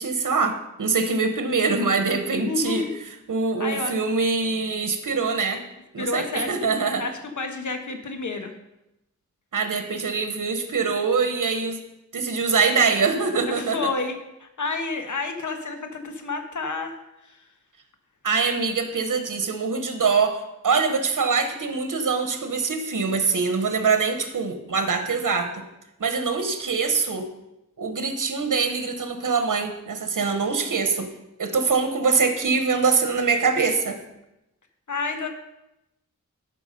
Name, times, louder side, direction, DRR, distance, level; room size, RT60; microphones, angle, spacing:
voice 1, 0.0-2.9 3.3-5.6 5.9-7.0 9.5-11.8 12.1-13.9 18.2-20.4 20.6-25.6 26.0-27.3 27.8-31.1 31.4-34.0, right 4 dB, 85° right, 7 dB, 1.2 m, -24 dB
voice 2, 2.5-2.9 3.6-4.0 6.0-6.6 7.0-8.5 13.5-17.0 17.2-17.4 34.9-35.3, left 3 dB, 70° left, 5 dB, 1.4 m, -30 dB
13.0 x 6.0 x 5.3 m, 0.91 s
wide cardioid pair, 75°, 31 cm